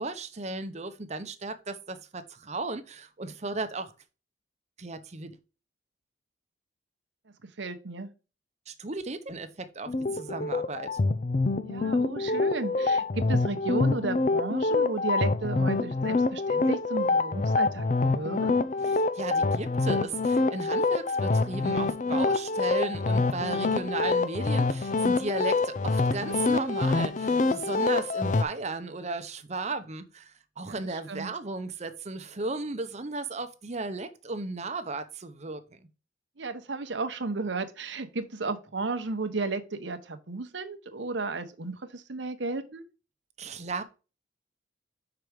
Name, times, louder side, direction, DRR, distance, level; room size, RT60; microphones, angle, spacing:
voice 1, 0.0-3.9 4.8-5.4 8.7-10.9 18.9-35.6 43.4-43.8, right 3 dB, 35° right, 0.8 m, -35 dB
voice 2, 7.4-8.1 11.6-18.5 30.6-31.3 36.4-42.9, right 3 dB, 75° right, 0.9 m, -34 dB
sound 1, 9.9-28.4, left 3 dB, 40° left, 0.5 m, -26 dB
5.9 x 4.7 x 5.0 m
head